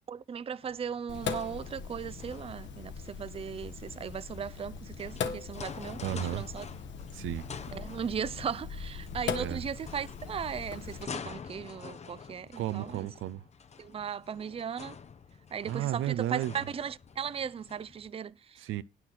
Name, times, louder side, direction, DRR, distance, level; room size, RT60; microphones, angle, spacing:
voice 1, 0.1-6.7 7.7-13.1 13.8-15.0 15.5-18.7, right 7 dB, 30° right, 0.5 m, -37 dB
sound 1, 0.6-18.1, left 6 dB, 35° left, 0.8 m, -47 dB
Sink (filling or washing), 1.1-11.0, left 6 dB, 70° left, 1.4 m, -40 dB
voice 2, 6.0-6.4 7.1-7.5 9.4-9.6 12.6-13.4 15.6-16.5 18.6-18.8, right 13 dB, 80° right, 0.6 m, -33 dB
9.9 x 5.9 x 6.1 m
cardioid pair, 90°, 20 cm